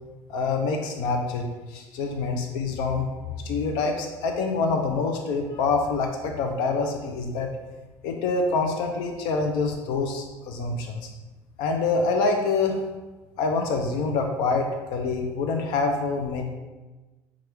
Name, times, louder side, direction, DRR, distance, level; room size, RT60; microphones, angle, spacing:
voice 1, 0.3-3.1 3.4-7.5 8.0-11.1 11.6-12.8 13.4-16.4, left 4 dB, 75° left, 3 dB, 0.5 m, -26 dB
5.8 x 2.4 x 3.3 m, 1.2 s
cardioid pair, 145°, 8 cm